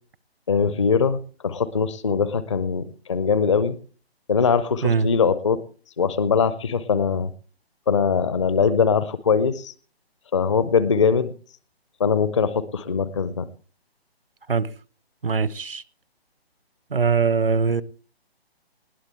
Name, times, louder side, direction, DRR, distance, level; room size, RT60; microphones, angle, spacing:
voice 1, 0.5-3.7 4.3-5.6 6.0-7.3 7.9-9.7 10.3-11.3 12.0-13.5, left 6 dB, 30° left, 0.6 m, -21 dB
voice 2, 15.2-15.8 16.9-17.8, right 5 dB, 60° right, 0.9 m, -21 dB
20.0 x 17.5 x 3.3 m
figure-of-eight pair, 140°, 31 cm